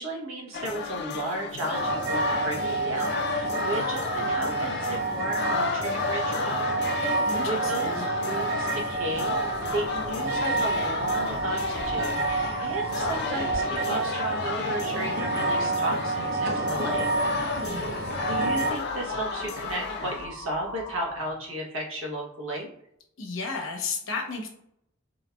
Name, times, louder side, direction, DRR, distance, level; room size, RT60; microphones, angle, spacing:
voice 1, 0.0-7.2 7.4-9.4 9.7-17.1 18.3-22.7, right 1 dB, 80° right, -1 dB, 0.9 m, -34 dB
sound 1, 0.5-20.3, left 5 dB, 55° left, 0.3 m, -33 dB
sound 2, 1.7-18.7, right 3 dB, 50° right, 0.5 m, -29 dB
Crow, 6.0-21.5, equal, 30° right, 1.3 m, -43 dB
voice 2, 7.0-8.0 17.3-18.1 23.2-24.5, left 4 dB, 75° left, 0 dB, 0.8 m, -34 dB
4.0 x 2.4 x 2.2 m, 0.73 s
head